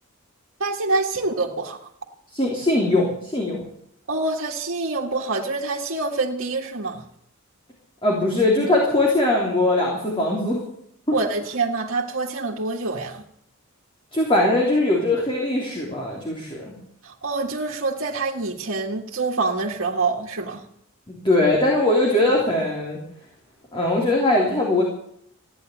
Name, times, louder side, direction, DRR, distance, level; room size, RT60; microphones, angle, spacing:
voice 1, 0.6-1.8 4.1-7.0 11.1-13.2 17.0-20.6, right 3 dB, 65° right, -4 dB, 1.9 m, -26 dB
voice 2, 2.3-3.6 8.0-10.6 14.1-16.7 21.1-23.0 23.7-24.8, left 2 dB, 25° left, -2 dB, 3.3 m, -21 dB
15.5 x 10.5 x 9.1 m, 0.70 s
head